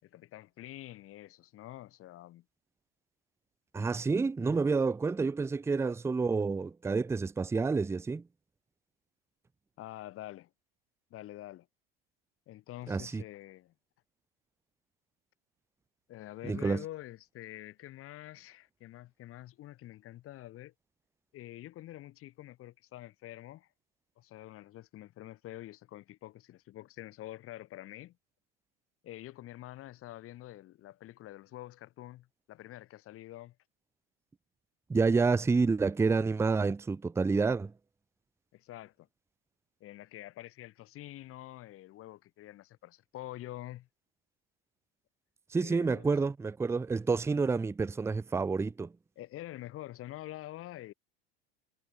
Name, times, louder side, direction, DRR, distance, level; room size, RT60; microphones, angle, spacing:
voice 1, 0.0-2.4 9.8-10.5 11.1-11.7 12.5-13.7 16.1-20.7 21.3-23.7 24.2-28.2 29.0-33.5 38.5-39.1 39.8-43.9 45.6-46.1 49.2-50.9, left 15 dB, 50° left, 6.4 m, -47 dB
voice 2, 3.7-8.2 12.9-13.2 16.4-16.8 34.9-37.7 45.5-48.9, right 4 dB, 10° right, 0.6 m, -29 dB
hypercardioid pair, 95°, 30 cm